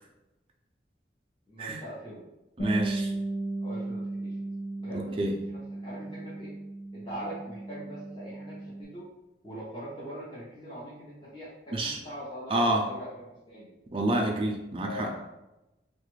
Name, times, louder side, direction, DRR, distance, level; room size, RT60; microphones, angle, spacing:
voice 1, 1.5-2.2 3.6-4.5 4.8-5.2 5.5-6.5 6.9-9.1 9.4-13.7 14.8-15.2, equal, 25° left, -9 dB, 0.9 m, -42 dB
Bass guitar, 2.6-8.8, right 2 dB, 55° left, 0.5 m, -35 dB
voice 2, 2.6-3.1 4.9-5.3 11.7-12.0 12.5-12.8 13.9-15.1, right 1 dB, 30° right, 0 dB, 0.4 m, -28 dB
3.0 x 2.4 x 3.1 m, 0.97 s
head